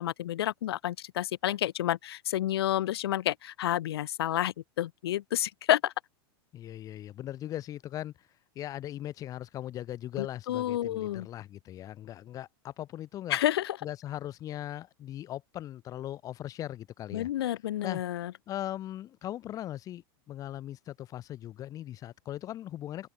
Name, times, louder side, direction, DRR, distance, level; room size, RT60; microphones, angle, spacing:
voice 1, 0.0-5.9 10.2-11.3 13.3-13.8 17.1-18.3, left 13 dB, 85° left, 3.6 m, -30 dB
voice 2, 6.5-8.3 8.5-13.4 13.8-17.3 17.8-18.0 18.5-23.1, left 12 dB, 25° left, 6.4 m, -39 dB
open air
supercardioid pair, 160°, 13 cm